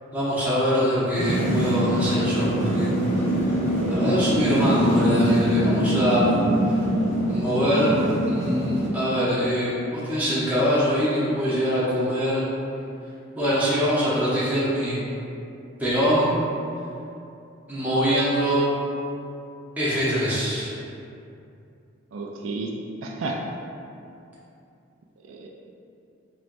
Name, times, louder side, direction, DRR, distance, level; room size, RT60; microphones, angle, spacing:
voice 1, 0.1-2.9 3.9-6.3 7.3-7.9 8.3-12.5 13.3-15.0 15.8-16.3 17.7-18.6 19.8-20.7, equal, 10° right, -11 dB, 1.0 m, -23 dB
sound 1, 1.1-8.9, equal, 35° left, 1.1 m, -23 dB
voice 2, 22.1-22.7 23.0-23.4 25.3-25.5, right 3 dB, 75° right, 0 dB, 0.4 m, -31 dB
4.4 x 3.1 x 2.6 m, 2.6 s
head